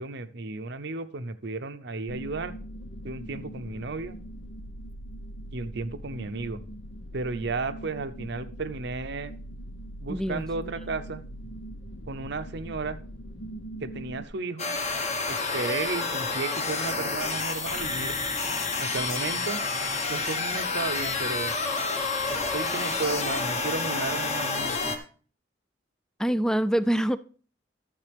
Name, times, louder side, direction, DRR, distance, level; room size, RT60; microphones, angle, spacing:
voice 1, 0.0-2.5 3.0-4.2 5.5-6.6 7.1-9.3 10.0-11.2 12.1-13.0 13.8-14.7 15.3-18.2 18.8-19.6 20.1-21.5 22.3-24.9, right 3 dB, 65° right, 0.7 m, -33 dB
sound 1, 2.1-14.2, right 1 dB, 75° left, 0.9 m, -41 dB
voice 2, 10.1-10.4 26.2-27.2, right 1 dB, 5° left, 0.3 m, -25 dB
sound 2, 14.6-25.0, left 3 dB, 35° left, 1.2 m, -29 dB
12.0 x 7.3 x 3.4 m
head